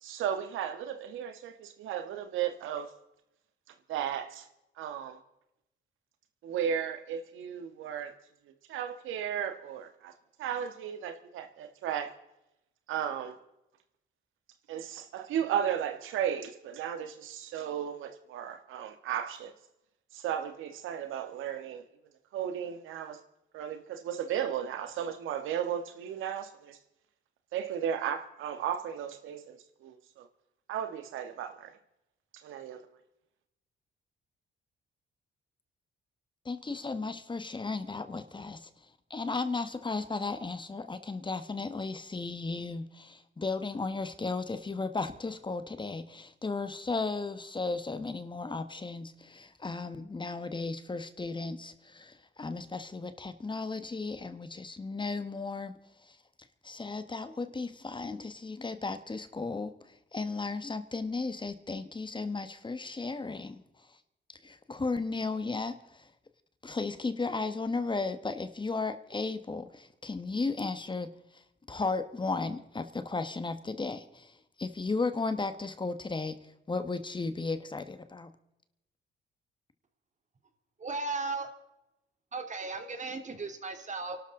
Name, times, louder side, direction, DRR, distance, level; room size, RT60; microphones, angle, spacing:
voice 1, 0.0-2.9 3.9-4.5 4.8-5.2 6.4-8.1 8.7-10.1 10.4-12.1 12.9-13.4 14.7-19.5 20.1-21.8 22.3-23.2 23.5-26.8 27.5-30.3 30.7-31.7 32.4-32.8, right 9 dB, 85° right, 1.5 m, -35 dB
voice 2, 36.4-38.7 39.1-56.2 56.6-64.0 64.3-66.1 66.6-78.3, left 3 dB, 25° left, 1.4 m, -35 dB
voice 3, 80.8-81.5 82.3-84.2, right 3 dB, 35° right, 2.7 m, -36 dB
30.0 x 12.5 x 3.8 m
cardioid pair, 90°, 20 cm